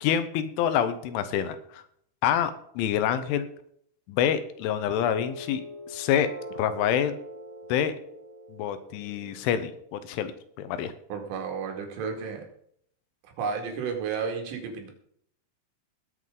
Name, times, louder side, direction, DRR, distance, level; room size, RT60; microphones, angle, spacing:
voice 1, 0.0-1.8 2.2-3.5 4.1-5.6 5.9-6.3 6.6-7.2 7.7-7.9 8.5-10.3 10.6-10.9, left 9 dB, 80° left, 11 dB, 3.3 m, -26 dB
sound 1, 5.0-10.0, equal, 40° right, 3.8 m, -42 dB
voice 2, 11.1-12.4 13.4-14.9, right 6 dB, 80° right, 3 dB, 4.7 m, -32 dB
20.5 x 8.1 x 3.8 m, 0.67 s
omnidirectional pair, 5.7 m